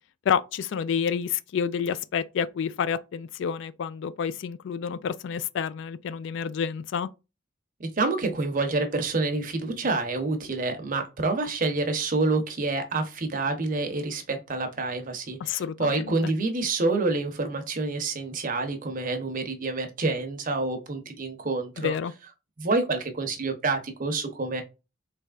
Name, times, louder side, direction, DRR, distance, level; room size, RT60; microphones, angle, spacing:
voice 1, 0.3-7.1 15.4-16.3 21.8-22.1, left 7 dB, 65° left, 0.3 m, -29 dB
voice 2, 7.8-21.9 22.6-24.6, right 3 dB, 45° right, 0.8 m, -28 dB
4.1 x 3.4 x 2.4 m
head